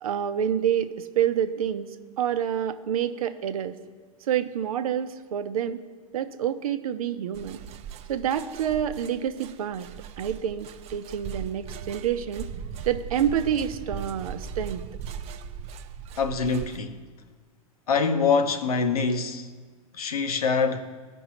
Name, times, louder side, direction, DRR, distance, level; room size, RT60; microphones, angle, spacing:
voice 1, 0.0-1.9 2.2-3.8 4.2-5.8 6.1-7.6 8.1-9.9 10.2-12.5 12.9-14.9, right 9 dB, 75° right, 0.7 m, -28 dB
sound 1, 7.3-16.8, right 7 dB, 35° right, 0.5 m, -39 dB
voice 2, 16.2-17.0 17.9-19.5 19.9-20.8, left 5 dB, 80° left, 0.9 m, -24 dB
16.0 x 5.4 x 3.0 m
hypercardioid pair, 100°, 19 cm